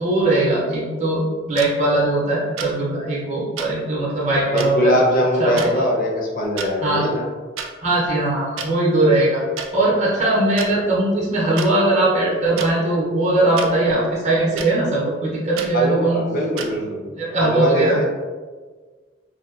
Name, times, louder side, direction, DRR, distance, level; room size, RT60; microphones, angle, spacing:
voice 1, 0.0-5.0 5.4-5.9 6.8-7.0 7.8-9.4 9.7-16.2 17.2-18.0, right 2 dB, 35° right, -7 dB, 0.6 m, -20 dB
sound 1, 1.6-1.7 2.6-2.7 3.6-3.7 4.6-4.7 5.6-5.7 6.4-6.7 7.6-7.7 8.6-8.7 9.6-9.7 10.6-10.7 11.6-11.7 12.6-12.7 13.6-13.7 14.6-14.7 15.6-15.7 16.6-16.7, right 6 dB, 75° right, 0.3 m, -29 dB
voice 2, 4.5-7.2 15.7-18.1, equal, 45° left, -1 dB, 0.5 m, -21 dB
2.6 x 2.2 x 2.4 m, 1.4 s
head